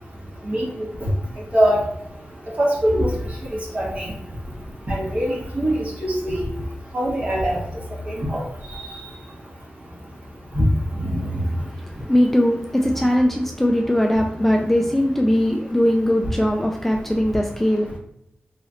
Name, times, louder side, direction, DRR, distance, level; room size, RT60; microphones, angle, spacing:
voice 1, 2.6-3.1 3.7-4.1 4.9-6.4 6.9-7.6 8.1-8.4 10.5-10.6 11.1-11.2, equal, 40° right, 1.3 m, -22 dB
voice 2, 11.2-18.0, left 1 dB, 5° left, 0.3 m, -20 dB
4.0 x 3.0 x 2.4 m
wide cardioid pair, 125°, 4 cm